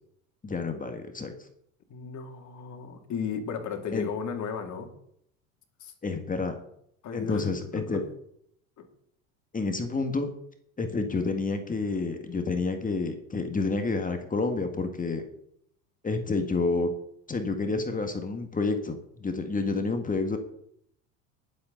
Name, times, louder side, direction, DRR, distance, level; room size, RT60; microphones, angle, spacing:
voice 1, 0.4-1.3 3.9-4.1 6.0-6.6 7.1-8.0 9.5-10.3 10.8-15.2 16.0-16.9 17.3-20.4, left 3 dB, 20° left, 6 dB, 1.8 m, -29 dB
voice 2, 1.9-4.9 5.8-5.9 7.0-8.1 8.8-8.9, left 6 dB, 45° left, 4 dB, 2.8 m, -35 dB
20.0 x 7.9 x 4.0 m, 0.71 s
hypercardioid pair, 75°, 41 cm